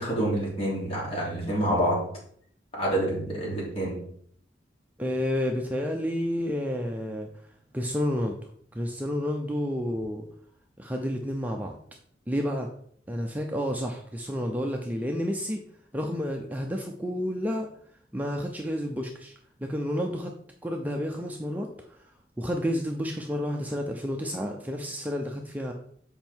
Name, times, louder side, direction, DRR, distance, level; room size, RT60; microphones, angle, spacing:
voice 1, 0.0-2.0 2.7-4.0, right 1 dB, 35° left, -5 dB, 3.3 m, -27 dB
voice 2, 5.0-7.3 7.7-8.4 8.7-10.3 10.8-11.7 12.3-12.7 13.1-15.6 15.9-17.7 18.1-19.3 19.6-20.3 20.6-22.1 22.4-25.7, equal, 10° right, 2 dB, 0.6 m, -30 dB
7.6 x 5.2 x 4.5 m, 0.62 s
head